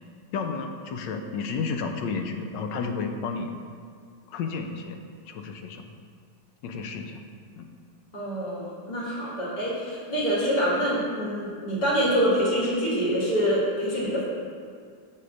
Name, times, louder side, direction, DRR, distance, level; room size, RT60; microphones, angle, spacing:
voice 1, 0.3-3.5 4.3-5.0 5.2-5.9 6.6-7.2 7.6-7.7, left 5 dB, 75° left, 5 dB, 1.2 m, -32 dB
voice 2, 8.1-14.2, equal, 25° left, -7 dB, 1.6 m, -25 dB
6.8 x 3.7 x 6.3 m, 2.2 s
omnidirectional pair, 2.1 m